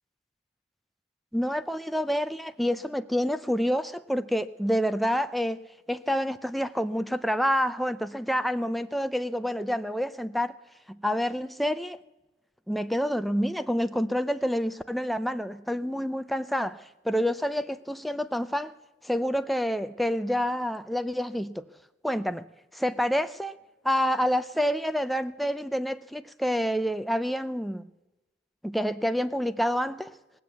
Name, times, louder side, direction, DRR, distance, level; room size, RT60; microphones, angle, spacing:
voice 1, 1.3-5.6 5.9-10.5 10.9-12.0 12.7-18.7 19.0-21.6 22.0-22.4 22.7-23.6 23.8-27.9 28.6-30.2, equal, ahead, 0.4 m, -28 dB
20.0 x 7.6 x 8.2 m
head